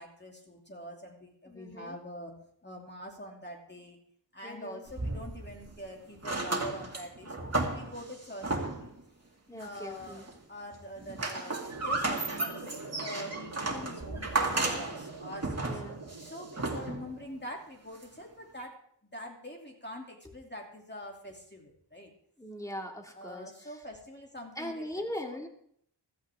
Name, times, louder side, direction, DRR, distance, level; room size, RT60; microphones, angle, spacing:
voice 1, 0.0-4.0 4.3-8.9 9.5-15.7 16.2-18.8 19.1-22.1 23.1-24.9 25.2-25.4, equal, 25° left, 0 dB, 2.7 m, -45 dB
voice 2, 1.5-2.0 4.4-4.8 9.5-10.2 15.6-16.0 22.4-23.8 24.6-25.5, left 1 dB, 10° left, 2 dB, 2.3 m, -40 dB
sound 1, 4.9-5.8 6.1-9.0 9.6-10.4 10.7-17.2 18.0-18.1, right 2 dB, 35° right, 2.3 m, -34 dB
sound 2, 11.7-17.7, right 4 dB, 75° right, 1.8 m, -46 dB
15.5 x 13.5 x 3.6 m, 0.66 s
wide cardioid pair, 70°, 42 cm